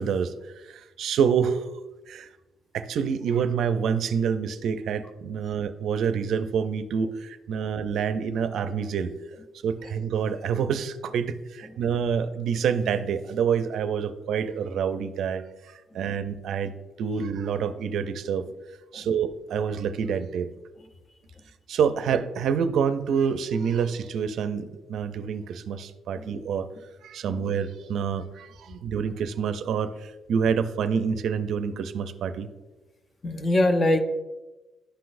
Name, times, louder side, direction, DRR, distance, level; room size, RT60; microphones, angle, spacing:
voice 1, 0.0-1.7 2.1-2.3 2.7-9.1 9.6-18.5 18.9-20.5 21.7-26.7 27.0-32.5, right 7 dB, 75° right, 10 dB, 0.4 m, -27 dB
voice 2, 33.2-34.0, left 1 dB, 35° left, 7 dB, 0.7 m, -24 dB
11.5 x 3.9 x 2.5 m, 1.1 s
cardioid pair, 90°, 0 cm